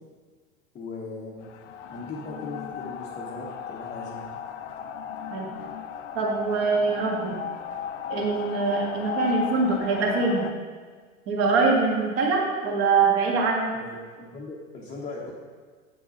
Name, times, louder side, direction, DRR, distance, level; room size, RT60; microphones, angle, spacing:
voice 1, 0.7-1.5 1.9-4.2 13.7-15.3, left 3 dB, 15° left, -3 dB, 0.9 m, -38 dB
sound 1, 1.4-10.5, left 8 dB, 55° left, 0.6 m, -36 dB
voice 2, 6.2-7.4 8.1-10.5 11.3-13.7, right 4 dB, 35° right, -1 dB, 1.7 m, -23 dB
8.6 x 6.0 x 3.9 m, 1.5 s
figure-of-eight pair, 90°, 44 cm